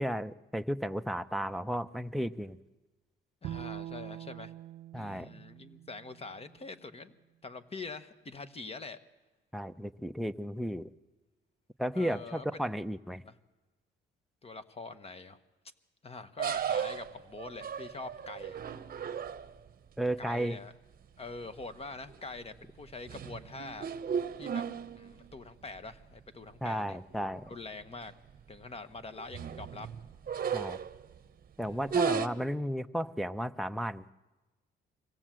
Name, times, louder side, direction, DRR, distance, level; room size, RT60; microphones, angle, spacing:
voice 1, 0.0-2.6 4.9-5.3 9.5-10.9 11.8-13.2 20.0-20.6 26.6-27.5 30.5-30.8 31.6-34.1, equal, ahead, 8 dB, 0.6 m, -34 dB
voice 2, 3.4-4.5 4.9-7.1 7.4-9.0 11.9-12.7 13.2-13.3 14.4-15.4 16.0-18.6 20.2-20.7 21.2-23.9 24.4-24.6 24.9-28.1 28.5-29.9 31.6-32.1, left 3 dB, 30° left, 12 dB, 1.2 m, -45 dB
Bowed string instrument, 3.4-6.7, right 12 dB, 80° right, 0.6 m, -44 dB
sound 1, 16.4-19.7 21.4-21.6 22.0-22.4 22.8-25.3 25.8-25.9 26.2-26.3 27.1-27.2 27.5-27.7 28.0-28.4 29.0-31.2 31.8-32.3, right 7 dB, 45° right, 0.9 m, -35 dB
24.0 x 17.0 x 7.6 m, 1.2 s
cardioid pair, 90°, 20 cm